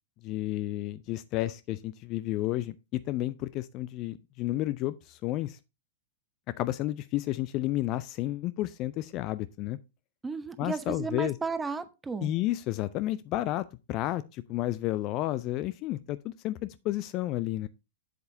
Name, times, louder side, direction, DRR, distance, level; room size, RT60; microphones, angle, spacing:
voice 1, 0.2-5.6 6.6-9.8 10.6-11.4 12.2-17.7, left 15 dB, 35° left, 0.4 m, -31 dB
voice 2, 10.2-12.4, right 4 dB, 10° right, 0.8 m, -34 dB
7.8 x 7.5 x 2.7 m
figure-of-eight pair, 105°, 0 cm